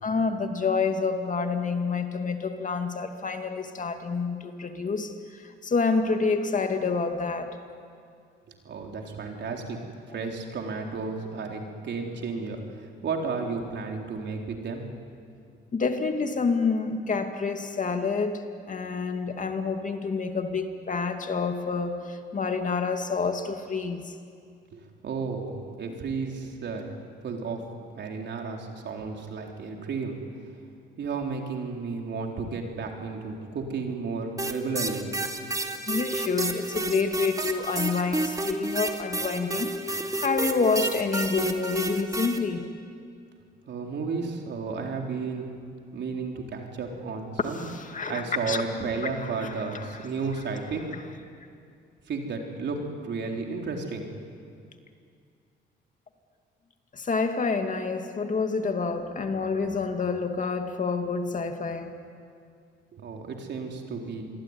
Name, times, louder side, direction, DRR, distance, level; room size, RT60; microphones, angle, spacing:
voice 1, 0.0-7.6 15.7-18.4 18.7-24.1 35.9-42.7 47.5-48.6 49.0-50.1 56.9-61.9, left 4 dB, 40° left, 6 dB, 2.4 m, -28 dB
voice 2, 8.6-9.8 10.1-14.8 24.7-27.0 27.2-27.6 27.9-30.2 31.0-35.1 43.7-45.5 45.9-47.6 48.1-50.9 52.1-54.1 62.9-64.2, right 4 dB, 60° right, 2 dB, 4.0 m, -33 dB
sound 1, 34.4-42.4, right 2 dB, 15° right, 2.6 m, -30 dB
27.5 x 22.5 x 9.8 m, 2.3 s
cardioid pair, 90°, 20 cm